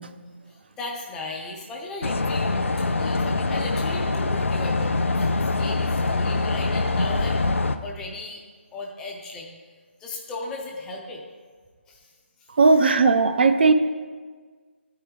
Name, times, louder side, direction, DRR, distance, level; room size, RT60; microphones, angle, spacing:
voice 1, 0.5-7.4 7.8-8.4 8.7-9.5 10.0-11.3 11.9-12.1 12.6-13.0, left 2 dB, 5° left, -1 dB, 0.4 m, -36 dB
sound 1, 2.0-7.8, left 3 dB, 85° left, 0.5 m, -24 dB
voice 2, 12.6-13.7, right 4 dB, 55° right, 9 dB, 0.5 m, -17 dB
12.0 x 4.6 x 3.3 m, 1.5 s
figure-of-eight pair, 165°, 7 cm